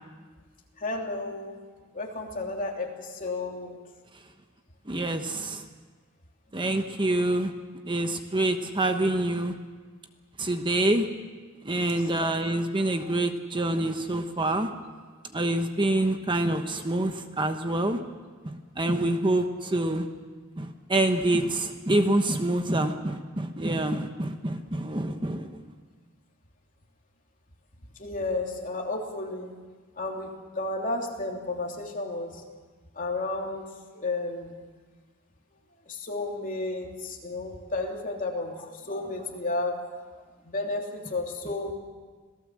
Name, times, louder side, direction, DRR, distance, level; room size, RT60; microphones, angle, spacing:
voice 1, 0.8-1.6 1.9-3.7 28.0-29.5 30.0-32.4 33.0-33.6 33.9-34.5 35.9-40.0 40.4-41.7, left 2 dB, 40° left, 1 dB, 3.2 m, -32 dB
voice 2, 4.9-5.6 6.5-7.5 7.9-9.5 10.4-11.1 11.6-14.7 15.3-18.0 18.4-20.1 20.6-25.6, right 1 dB, 25° right, 7 dB, 1.1 m, -26 dB
26.5 x 17.5 x 7.6 m, 1.5 s
head